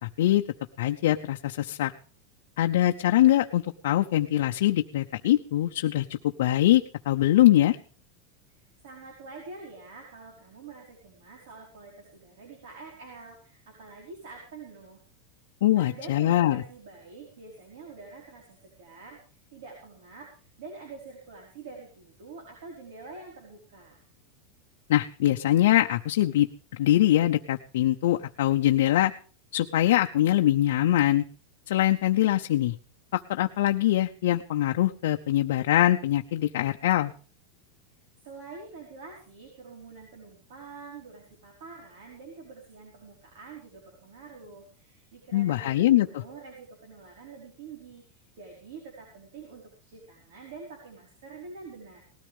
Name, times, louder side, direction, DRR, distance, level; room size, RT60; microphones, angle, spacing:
voice 1, 0.0-0.4 0.8-1.9 2.6-7.8 15.6-16.6 24.9-29.1 29.5-31.2 31.7-32.8 33.1-37.1 45.3-46.2, left 13 dB, 70° left, 4 dB, 0.7 m, -23 dB
voice 2, 8.5-15.0 15.7-24.0 38.2-52.0, right 4 dB, 65° right, 0 dB, 4.9 m, -46 dB
19.0 x 13.5 x 3.6 m, 0.39 s
supercardioid pair, 180°, 0 cm